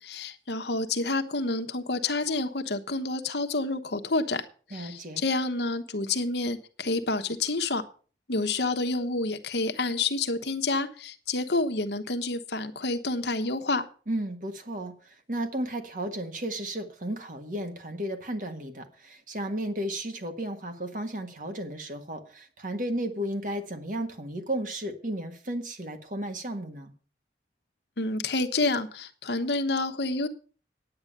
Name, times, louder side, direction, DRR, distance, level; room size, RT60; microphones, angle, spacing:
voice 1, 0.0-4.4 4.7-7.9 8.3-13.8 28.0-30.3, left 3 dB, 75° left, 8 dB, 1.2 m, -29 dB
voice 2, 4.7-5.2 14.1-26.9, right 1 dB, 45° right, 6 dB, 1.6 m, -34 dB
9.6 x 8.8 x 6.7 m, 0.40 s
head